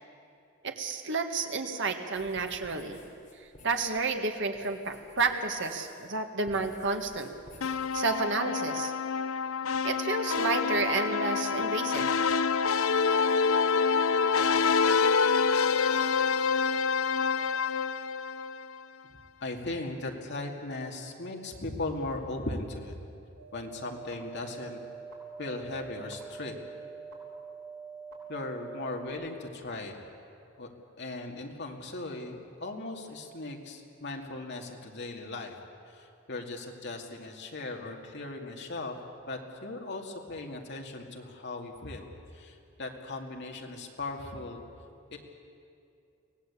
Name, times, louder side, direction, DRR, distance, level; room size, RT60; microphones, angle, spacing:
voice 1, 0.6-3.0 3.6-7.3 7.9-8.9 9.8-12.1, right 3 dB, 55° right, 5 dB, 1.7 m, -30 dB
sound 1, 2.1-6.1 6.4-8.0, left 1 dB, 35° left, 3.9 m, -53 dB
sound 2, 7.6-18.8, left 5 dB, 75° left, 0.6 m, -27 dB
voice 2, 19.4-23.0 23.5-24.8 25.4-26.6 28.3-30.0 30.6-30.7 31.0-35.5 35.9-39.0 39.3-44.6 45.1-45.2, left 2 dB, 55° left, 1 dB, 2.4 m, -38 dB
sound 3, 23.4-29.1, right 5 dB, 90° right, 7.2 m, -45 dB
24.5 x 17.5 x 8.4 m, 2.5 s
head